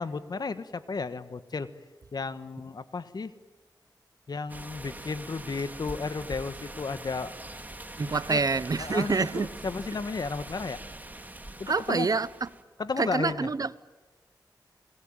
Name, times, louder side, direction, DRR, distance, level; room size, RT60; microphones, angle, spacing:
voice 1, 0.0-1.7 2.1-3.3 4.3-7.4 8.0-8.4 8.8-10.8 11.6-12.1 12.8-13.5, left 4 dB, 60° left, 1.4 m, -33 dB
sound 1, 4.5-12.6, right 1 dB, 20° right, 2.5 m, -43 dB
voice 2, 8.0-9.5 11.7-12.5 13.0-13.8, right 4 dB, 50° right, 0.8 m, -27 dB
29.0 x 21.0 x 9.0 m
cardioid pair, 60°, 8 cm